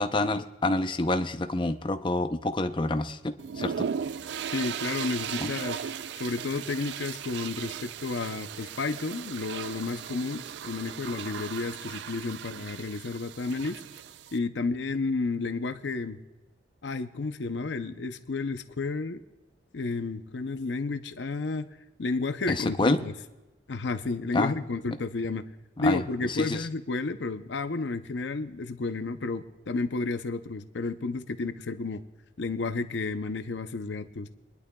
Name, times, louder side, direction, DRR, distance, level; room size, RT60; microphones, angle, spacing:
voice 1, 0.0-3.9 5.4-5.5 22.5-23.0 24.3-24.5 25.8-26.0 26.4-26.7, left 2 dB, 30° left, 8 dB, 0.6 m, -27 dB
sound 1, 3.4-14.4, right 8 dB, 70° right, 0.3 m, -37 dB
voice 2, 4.5-5.9 6.2-13.8 14.3-16.2 16.8-19.2 19.7-23.1 23.7-25.5 25.8-32.0 32.4-34.3, left 3 dB, 85° left, 9 dB, 0.6 m, -31 dB
24.0 x 11.0 x 2.3 m, 1.0 s
head